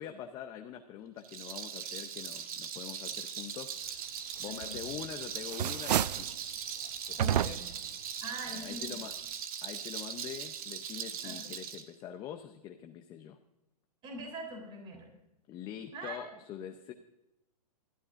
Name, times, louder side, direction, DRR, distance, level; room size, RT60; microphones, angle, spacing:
voice 1, 0.0-6.3 7.1-7.6 8.5-9.1 9.6-13.4 15.5-16.9, left 9 dB, 20° left, 5 dB, 0.7 m, -44 dB
Rattle, 1.2-11.8, right 8 dB, 60° right, 1.7 m, -40 dB
voice 2, 4.5-4.8 7.2-7.7 8.2-9.0 11.2-11.5 14.0-15.1 15.9-16.2, right 1 dB, 25° right, 2 dB, 3.7 m, -43 dB
sound 1, 4.6-5.1 5.4-6.3 7.2-7.9, right 11 dB, 90° right, 0.4 m, -30 dB
21.0 x 13.0 x 2.6 m, 0.92 s
hypercardioid pair, 155°, 20 cm